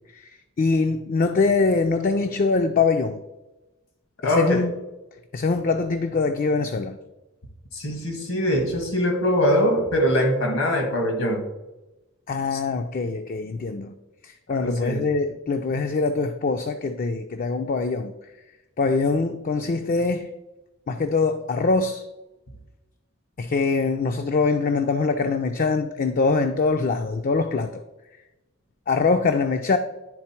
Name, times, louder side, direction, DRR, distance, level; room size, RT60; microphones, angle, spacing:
voice 1, 0.6-3.2 4.2-4.7 5.3-7.0 12.3-13.9 14.2-18.1 18.8-20.3 20.9-22.0 23.4-27.8 28.9-29.8, left 4 dB, 40° left, 7 dB, 0.4 m, -23 dB
voice 2, 4.2-4.6 7.7-11.4 12.5-12.6 14.6-15.0, equal, 85° left, 1 dB, 1.7 m, -22 dB
10.5 x 3.7 x 4.4 m, 1.0 s
head